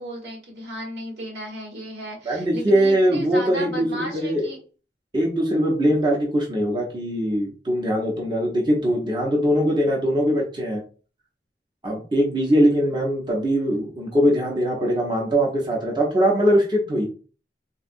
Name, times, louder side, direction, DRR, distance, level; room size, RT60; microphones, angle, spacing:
voice 1, 0.0-4.6, equal, 85° right, -2 dB, 1.5 m, -34 dB
voice 2, 2.2-4.5 5.1-10.8 11.8-17.1, equal, 25° right, -2 dB, 0.6 m, -21 dB
3.6 x 2.2 x 2.5 m, 0.37 s
head